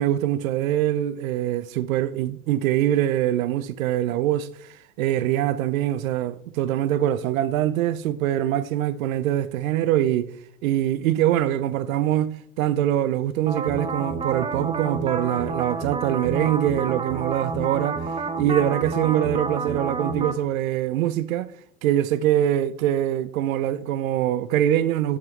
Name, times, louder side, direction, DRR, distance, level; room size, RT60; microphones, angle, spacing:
voice 1, 0.0-10.3 10.6-21.5 21.8-25.2, right 12 dB, 75° right, 0.6 m, -23 dB
sound 1, 13.5-20.3, right 4 dB, 15° right, 0.6 m, -29 dB
7.2 x 7.1 x 3.2 m
hypercardioid pair, 95°, 42 cm